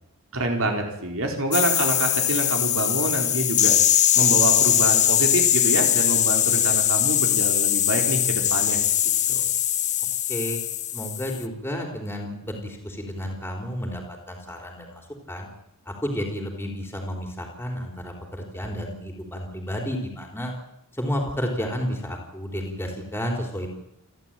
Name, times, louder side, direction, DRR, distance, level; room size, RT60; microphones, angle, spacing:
voice 1, 0.3-3.7 4.1-8.8 9.3-9.4, right 2 dB, 65° right, 2 dB, 4.4 m, -27 dB
sound 1, 1.5-11.4, left 11 dB, 35° left, 0.9 m, -21 dB
voice 2, 10.3-10.6 10.9-15.5 15.9-20.5 20.9-23.7, equal, 10° left, 2 dB, 4.0 m, -31 dB
28.5 x 13.0 x 9.2 m, 0.82 s
head